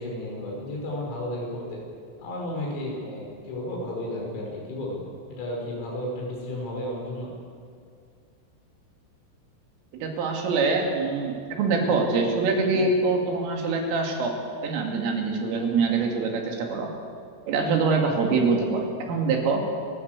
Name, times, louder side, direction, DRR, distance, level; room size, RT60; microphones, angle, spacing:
voice 1, 0.0-1.8 2.2-5.0 5.3-7.4, left 1 dB, 85° left, -2 dB, 8.5 m, -33 dB
voice 2, 9.9-14.4 14.6-16.9 17.5-19.6, right 4 dB, 75° right, 1 dB, 5.0 m, -24 dB
29.0 x 13.0 x 8.3 m, 2.2 s
omnidirectional pair, 6.0 m